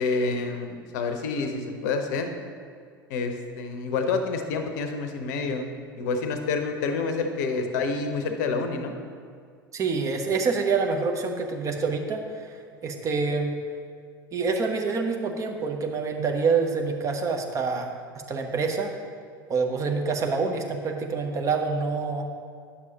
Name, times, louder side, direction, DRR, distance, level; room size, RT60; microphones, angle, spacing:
voice 1, 0.0-2.3 3.1-5.7 6.0-8.9, left 4 dB, 55° left, 6 dB, 0.7 m, -28 dB
voice 2, 9.7-12.5 12.8-13.5 14.3-17.9 18.3-18.9 19.5-22.3, right 4 dB, 25° right, 4 dB, 0.8 m, -26 dB
9.8 x 6.3 x 2.9 m, 2.1 s
figure-of-eight pair, 75°, 12 cm